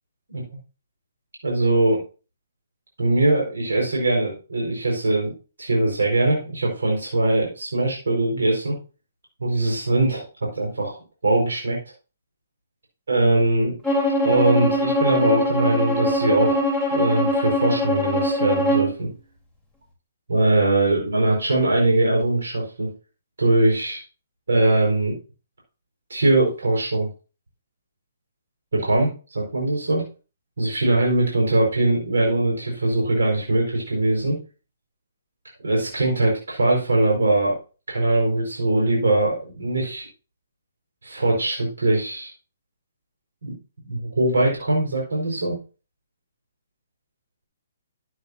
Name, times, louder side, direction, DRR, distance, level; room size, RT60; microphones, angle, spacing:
voice 1, 1.4-2.0 3.0-5.3 5.6-8.8 9.4-11.0 11.2-11.8 13.1-13.7 14.2-16.6 16.9-19.1 20.3-22.9 23.4-24.0 24.5-25.1 26.1-27.1 28.7-30.0 30.6-34.4 35.6-37.6 37.9-40.1 41.0-42.3 43.4-43.5 43.8-45.6, right 2 dB, 80° right, -1 dB, 4.7 m, -21 dB
Bowed string instrument, 13.8-18.9, left 1 dB, 10° right, 3.6 m, -22 dB
13.0 x 8.9 x 2.7 m, 0.34 s
hypercardioid pair, 140°, 0 cm